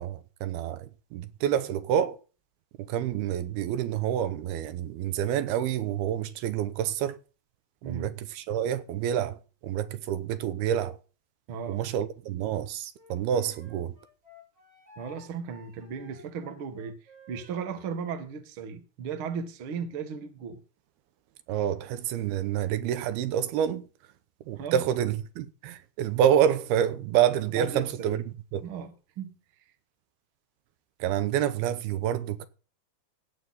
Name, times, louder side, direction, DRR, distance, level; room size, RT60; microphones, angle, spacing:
voice 1, 0.0-2.2 2.8-7.2 7.9-11.0 11.7-13.9 21.5-23.8 24.5-28.2 28.5-28.7 31.0-32.5, right 10 dB, 80° right, 2.8 m, -28 dB
voice 2, 7.8-8.2 11.5-11.8 15.0-17.0 17.3-20.6 24.6-24.8 27.5-28.2 28.6-29.4, right 6 dB, 50° right, 1.6 m, -36 dB
Wind instrument woodwind instrument, 12.9-18.0, left 1 dB, 20° right, 4.5 m, -54 dB
17.0 x 8.1 x 4.1 m
omnidirectional pair, 4.5 m